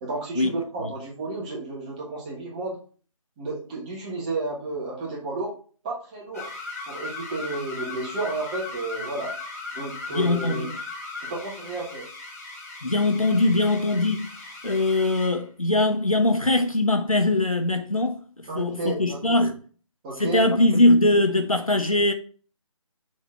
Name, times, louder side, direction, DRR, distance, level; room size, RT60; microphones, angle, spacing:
voice 1, 0.0-2.8 3.4-5.5 5.8-6.5 6.9-9.3 9.7-10.7 11.2-12.1 18.5-19.5 20.0-20.4, right 3 dB, 15° right, 1.1 m, -32 dB
sound 1, 6.3-15.4, left 3 dB, 30° left, 1.4 m, -38 dB
voice 2, 10.1-10.7 12.8-14.3 14.6-19.5 20.2-22.1, left 2 dB, 90° left, 1.3 m, -21 dB
6.3 x 4.1 x 4.2 m
figure-of-eight pair, 155°, 17 cm